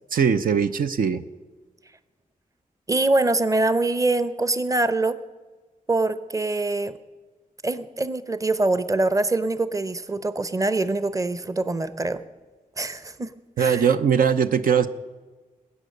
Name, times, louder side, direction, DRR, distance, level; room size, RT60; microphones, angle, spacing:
voice 1, 0.1-1.2 13.6-14.9, right 7 dB, 80° right, 9 dB, 0.7 m, -20 dB
voice 2, 2.9-5.2 5.9-7.0 7.6-12.2 12.8-13.9, right 2 dB, 25° right, 13 dB, 0.8 m, -24 dB
20.5 x 8.7 x 6.5 m, 1.3 s
wide cardioid pair, 85°, 14 cm